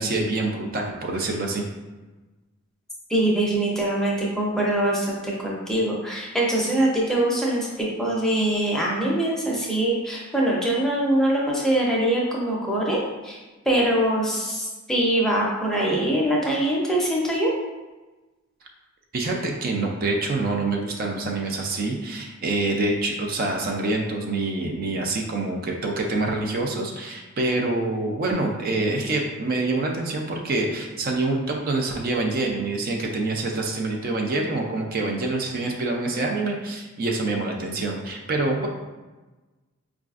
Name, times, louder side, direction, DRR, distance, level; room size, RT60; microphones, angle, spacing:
voice 1, 0.0-1.7 19.1-38.7, right 2 dB, 45° right, 1 dB, 0.4 m, -26 dB
voice 2, 3.1-13.4 13.7-17.5, right 1 dB, ahead, -4 dB, 0.6 m, -23 dB
4.8 x 2.4 x 2.4 m, 1.2 s
head